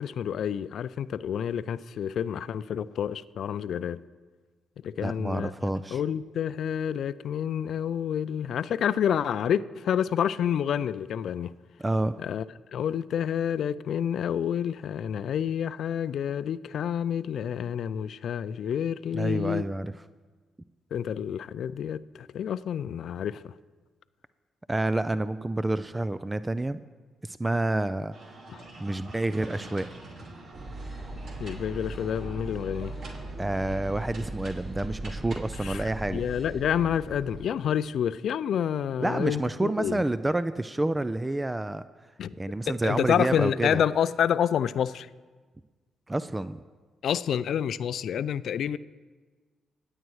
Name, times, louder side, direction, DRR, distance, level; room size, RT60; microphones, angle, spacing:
voice 1, 0.0-4.0 4.8-5.5 5.9-11.5 12.2-12.4 12.7-19.6 20.9-23.5 28.5-28.6 31.4-32.9 35.6-40.0 42.2-42.4 42.7-45.1 47.0-48.8, left 9 dB, 70° left, 0.4 m, -28 dB
voice 2, 5.0-6.0 11.8-12.2 19.1-19.9 24.7-26.8 27.2-28.1 28.8-30.0 33.4-36.2 39.0-41.8 42.4-43.8 46.1-46.6, right 2 dB, 20° right, 0.5 m, -28 dB
sound 1, 28.1-36.2, right 2 dB, 60° right, 2.5 m, -46 dB
sound 2, 30.5-37.4, right 2 dB, 45° right, 5.0 m, -39 dB
26.0 x 8.9 x 3.2 m
hypercardioid pair, 45°, 0 cm